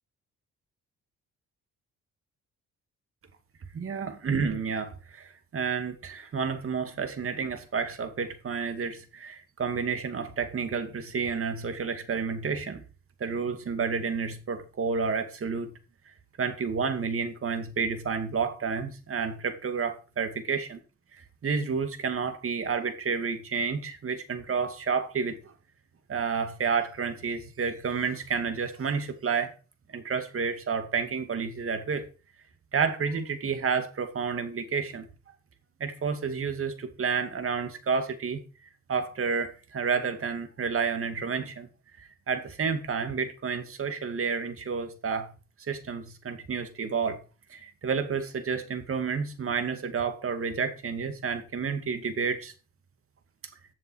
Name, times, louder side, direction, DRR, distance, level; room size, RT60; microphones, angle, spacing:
voice 1, 3.7-12.8 13.2-15.7 16.4-20.8 21.1-25.5 26.1-29.5 29.9-32.1 32.7-35.1 35.8-38.4 38.9-41.7 42.0-45.3 45.6-47.2 47.5-52.5, right 5 dB, 45° right, 2.3 m, -30 dB
14.5 x 7.6 x 4.7 m
cardioid pair, 90°, 30 cm